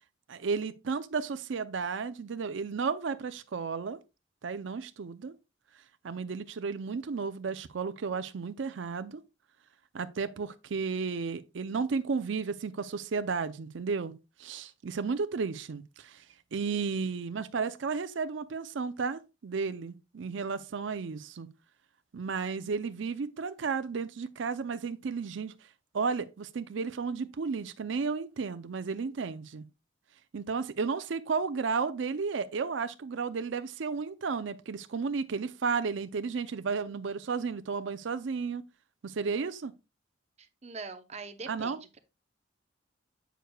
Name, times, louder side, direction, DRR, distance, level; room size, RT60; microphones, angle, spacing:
voice 1, 0.3-4.0 4.4-5.4 6.0-9.2 9.9-14.1 14.4-16.2 16.5-21.5 22.1-25.5 25.9-29.6 30.3-38.6 39.0-39.7 41.5-41.8, right 5 dB, 70° right, 0.5 m, -33 dB
voice 2, 40.6-42.0, right 4 dB, 35° right, 0.7 m, -42 dB
7.9 x 6.6 x 2.2 m
head